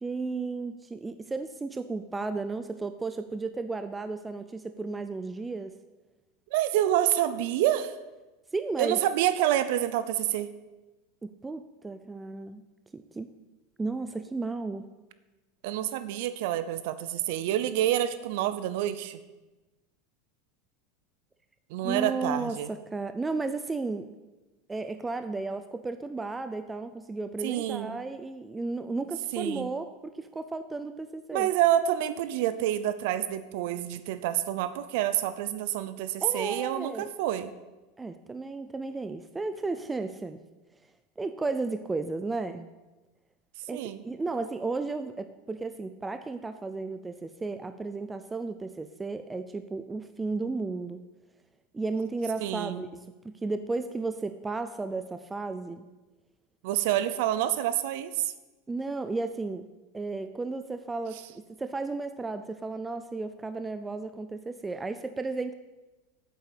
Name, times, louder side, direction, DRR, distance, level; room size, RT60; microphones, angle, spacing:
voice 1, 0.0-5.8 8.5-9.0 11.2-12.6 12.9-13.3 13.8-14.9 21.8-24.1 24.7-31.5 36.2-37.1 38.0-40.4 41.2-42.7 43.7-51.0 51.7-55.8 58.7-59.7 59.9-65.5, right 3 dB, 10° right, 9 dB, 0.4 m, -34 dB
voice 2, 6.5-8.0 8.8-10.5 15.6-19.2 21.7-22.7 27.4-28.0 29.3-29.7 31.3-37.5 43.7-44.0 52.4-52.8 56.6-58.3, right 12 dB, 60° right, 13 dB, 0.7 m, -28 dB
9.0 x 8.2 x 8.4 m, 1.1 s
supercardioid pair, 160°, 0 cm